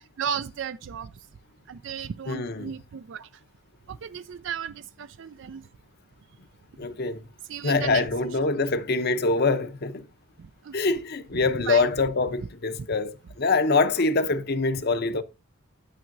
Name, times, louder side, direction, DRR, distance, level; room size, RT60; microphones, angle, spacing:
voice 1, 0.2-1.1 1.7-3.3 3.9-5.6 7.5-8.0 10.6-10.7 11.7-11.9 12.8-12.9, right 8 dB, 55° right, 0.4 m, -34 dB
voice 2, 2.3-2.7 6.8-7.2 7.6-10.0 10.7-15.2, left 3 dB, 45° left, 0.7 m, -24 dB
9.6 x 8.9 x 2.6 m
head